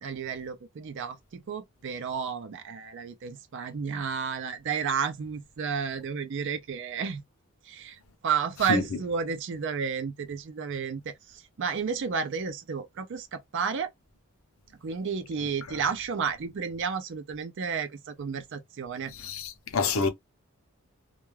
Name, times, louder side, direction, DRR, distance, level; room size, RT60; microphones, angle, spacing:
voice 1, 0.0-7.2 7.6-13.9 14.8-19.1, right 6 dB, 55° right, 0.4 m, -32 dB
voice 2, 19.2-20.1, left 4 dB, 65° left, 0.6 m, -27 dB
2.3 x 2.2 x 3.1 m
head